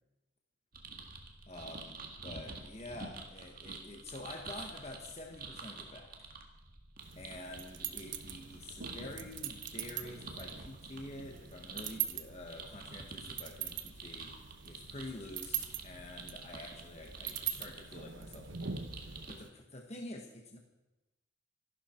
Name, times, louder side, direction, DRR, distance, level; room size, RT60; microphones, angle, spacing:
sound 1, 0.7-19.4, right 4 dB, 45° right, 1.9 m, -49 dB
voice 1, 1.5-6.1 7.2-20.6, left 2 dB, 30° left, 1 dB, 1.4 m, -48 dB
sound 2, 7.0-19.5, right 9 dB, 65° right, 1.1 m, -43 dB
25.5 x 12.0 x 4.5 m, 1.0 s
head